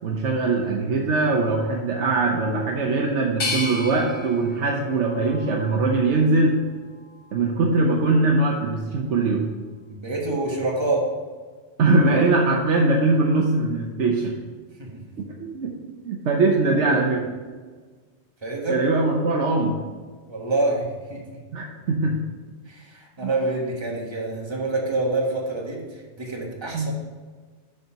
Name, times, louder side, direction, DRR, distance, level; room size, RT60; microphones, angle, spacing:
voice 1, 0.0-6.6 7.3-9.5 11.8-14.4 15.2-15.7 16.0-17.3 18.7-19.8 21.5-22.2 23.2-23.3 26.7-26.9, right 3 dB, 75° right, 0 dB, 1.1 m, -21 dB
sound 1, 3.4-6.3 6.9-7.7, left 3 dB, 75° left, 1.5 m, -34 dB
voice 2, 9.9-11.1 14.8-15.0 18.4-19.0 20.3-21.4 22.7-26.9, right 2 dB, 25° right, -1 dB, 1.3 m, -27 dB
6.6 x 4.9 x 5.7 m, 1.5 s
omnidirectional pair, 1.2 m